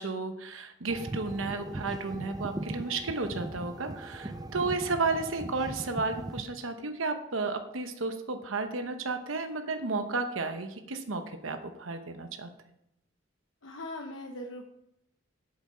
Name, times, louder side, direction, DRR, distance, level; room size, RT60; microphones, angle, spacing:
voice 1, 0.0-12.5, right 3 dB, 85° right, 7 dB, 0.9 m, -33 dB
sound 1, 0.9-6.4, right 1 dB, 20° right, 0.5 m, -39 dB
voice 2, 13.6-14.6, left 1 dB, 75° left, 2 dB, 1.0 m, -40 dB
8.2 x 7.9 x 5.6 m, 0.81 s
head